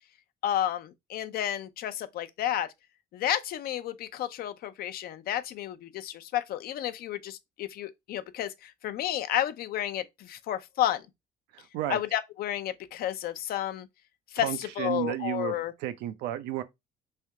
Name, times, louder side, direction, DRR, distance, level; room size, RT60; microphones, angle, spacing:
voice 1, 0.4-2.7 3.1-11.1 11.9-13.9 14.3-15.7, left 11 dB, 65° left, 0.5 m, -31 dB
voice 2, 11.5-12.0 14.4-15.5 15.8-16.6, right 12 dB, 90° right, 0.5 m, -32 dB
3.4 x 2.7 x 3.4 m
cardioid pair, 110°, 17 cm